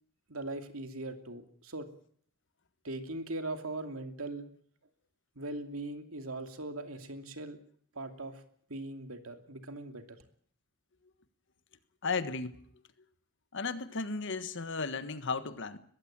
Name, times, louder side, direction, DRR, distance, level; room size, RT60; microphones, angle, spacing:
voice 1, 0.3-1.9 2.8-4.5 5.4-7.6 7.9-8.4 8.7-10.2, right 2 dB, 75° right, 2.7 m, -40 dB
voice 2, 12.0-12.6 13.5-15.8, left 4 dB, 60° left, 1.5 m, -34 dB
22.0 x 15.0 x 9.0 m
head